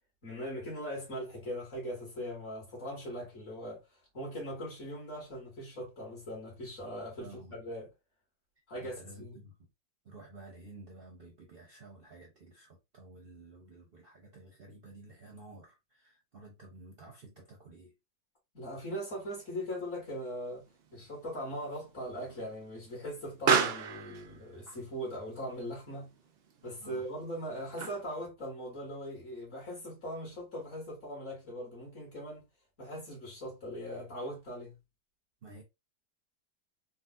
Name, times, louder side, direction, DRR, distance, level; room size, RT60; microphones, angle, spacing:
voice 1, 0.2-3.8 4.1-7.9 8.7-9.4 18.5-20.6 20.9-26.1 26.6-32.5 32.8-34.8, equal, 45° left, 1.9 m, -40 dB
voice 2, 7.2-7.6 8.8-9.7 10.0-17.9 26.8-27.1 35.4-35.6, right 2 dB, 50° right, 0.7 m, -52 dB
Explosion, 19.3-28.3, right 6 dB, 90° right, 0.5 m, -36 dB
3.9 x 2.3 x 2.4 m
omnidirectional pair, 1.8 m